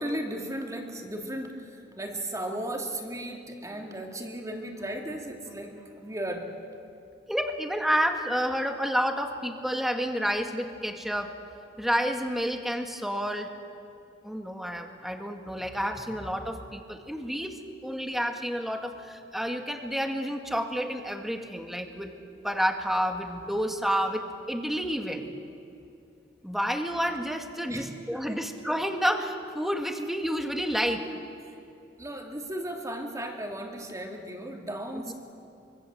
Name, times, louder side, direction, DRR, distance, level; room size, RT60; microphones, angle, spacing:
voice 1, 0.0-6.5 27.7-28.4 31.4-31.6 32.0-35.1, right 1 dB, 20° right, 2 dB, 2.7 m, -36 dB
voice 2, 7.3-11.3 11.8-13.5 14.2-22.1 22.4-25.2 26.4-31.1 35.1-35.2, equal, ahead, 4 dB, 1.8 m, -30 dB
25.0 x 24.0 x 7.8 m, 2.7 s
head